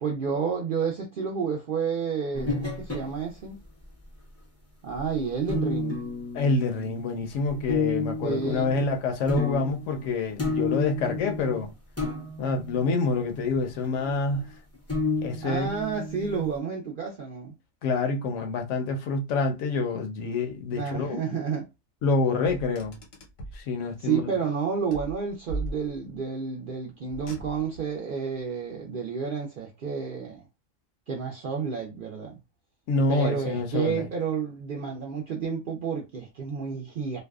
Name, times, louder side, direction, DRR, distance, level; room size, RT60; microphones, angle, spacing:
voice 1, 0.0-3.6 4.8-6.0 8.2-8.7 15.4-17.5 20.7-21.7 24.0-30.4 31.1-32.4 33.1-37.2, right 6 dB, 65° right, 0.5 m, -30 dB
sound 1, 2.3-3.1 5.0-5.1 5.5-7.2 7.5-8.9 9.3-10.1 10.4-11.7 12.0-12.9 13.5-14.4 14.9-16.6, left 3 dB, 25° left, 0.3 m, -31 dB
voice 2, 6.3-11.7 12.4-14.5 15.2-15.7 17.8-21.2 22.0-23.0 23.5-24.4 32.9-34.1, left 3 dB, 75° left, 0.9 m, -27 dB
Car, 22.4-23.7 24.9-26.2 27.1-27.9, right 2 dB, 90° left, 1.2 m, -38 dB
2.6 x 2.1 x 2.3 m
omnidirectional pair, 1.4 m